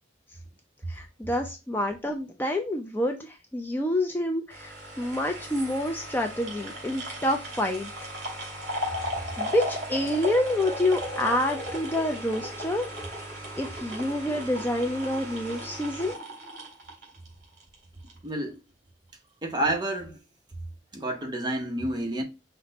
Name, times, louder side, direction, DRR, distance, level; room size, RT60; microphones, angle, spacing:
voice 1, 0.9-7.9 8.7-8.9 9.4-12.9 13.6-16.1, left 1 dB, 10° left, 0.4 m, -28 dB
sound 1, 4.5-17.7 18.1-18.2, equal, 45° right, 2.7 m, -36 dB
voice 2, 18.2-18.6 19.4-20.2 20.9-22.2, right 1 dB, 25° right, 0.8 m, -29 dB
5.8 x 2.2 x 3.9 m
head